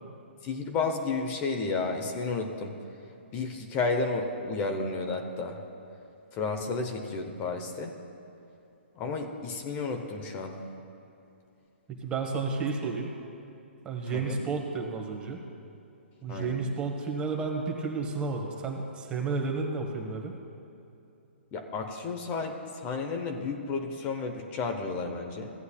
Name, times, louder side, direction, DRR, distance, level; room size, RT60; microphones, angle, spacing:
voice 1, 0.4-2.7 3.3-5.6 6.3-7.9 8.9-10.6 14.1-14.4 16.3-16.6 21.5-25.5, left 4 dB, 25° left, 4 dB, 0.8 m, -32 dB
voice 2, 11.9-13.1 13.8-15.4 16.2-20.3, right 4 dB, 15° right, 2 dB, 1.1 m, -32 dB
16.0 x 9.4 x 2.3 m, 2.8 s
figure-of-eight pair, 125°, 6 cm